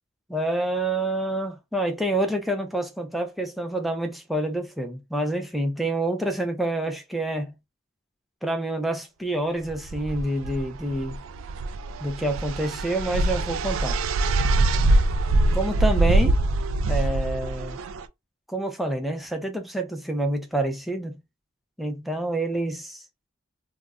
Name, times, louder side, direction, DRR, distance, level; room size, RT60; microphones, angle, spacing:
voice 1, 0.3-7.5 8.4-11.2 12.0-14.0 15.5-16.4 16.9-17.8 18.5-21.2 21.8-23.0, right 1 dB, ahead, 0.5 m, -27 dB
sound 1, 9.7-18.0, right 2 dB, 70° right, 0.3 m, -24 dB
2.4 x 2.0 x 3.5 m
head